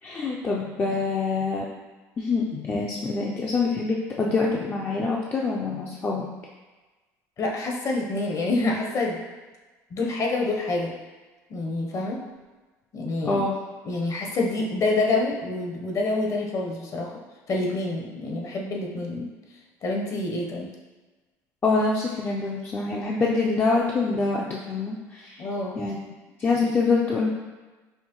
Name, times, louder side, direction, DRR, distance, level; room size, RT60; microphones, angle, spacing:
voice 1, 0.0-1.7 2.2-6.3 13.2-13.5 21.6-25.5 25.8-26.0 26.4-27.3, left 3 dB, 25° left, -3 dB, 0.4 m, -25 dB
voice 2, 7.4-9.2 9.9-10.9 11.5-12.2 12.9-13.4 13.8-17.2 17.5-19.3 19.8-20.7 25.4-25.7, left 2 dB, 45° left, 0 dB, 0.8 m, -27 dB
5.5 x 2.1 x 3.0 m, 1.2 s
supercardioid pair, 95°, 8 cm